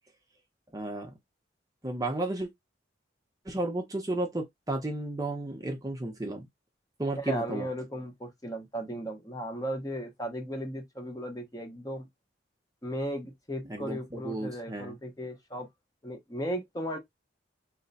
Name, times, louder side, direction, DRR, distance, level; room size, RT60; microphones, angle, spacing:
voice 1, 0.7-1.1 1.8-2.5 3.5-6.5 7.0-7.7 13.7-14.9, right 2 dB, 20° right, 0.7 m, -33 dB
voice 2, 7.2-12.1 12.8-15.7 16.0-17.0, equal, 20° left, 0.8 m, -36 dB
3.2 x 2.1 x 4.0 m
head